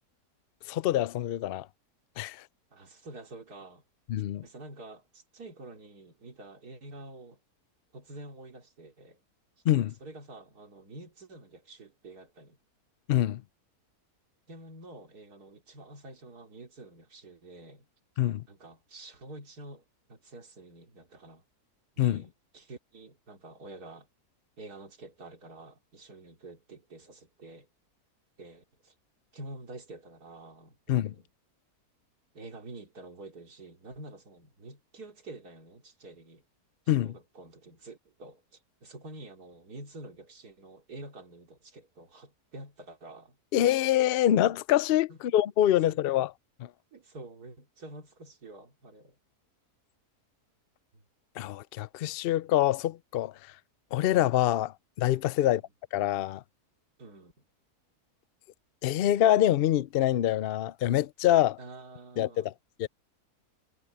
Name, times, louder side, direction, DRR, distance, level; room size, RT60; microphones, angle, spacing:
voice 1, 0.7-1.7 2.2-2.4 4.1-4.4 9.7-9.9 13.1-13.4 18.2-18.4 22.0-22.2 30.9-31.1 36.9-37.1 43.5-46.3 51.4-53.3 53.9-54.7 55.0-55.6 55.9-56.4 58.8-61.6 62.2-62.5 62.8-62.9, left 12 dB, 85° left, 0.5 m, -25 dB
voice 2, 2.7-3.8 4.4-7.4 7.9-9.2 10.0-12.6 14.5-17.9 18.5-21.4 22.0-24.1 24.6-27.7 28.4-28.9 29.3-31.3 32.3-36.4 36.9-43.4 45.1-45.2 45.9-46.0 46.9-49.2 50.9-51.0 55.4-55.6 57.0-57.3 61.6-62.5, right 2 dB, 80° right, 3.8 m, -48 dB
omnidirectional pair, 1.6 m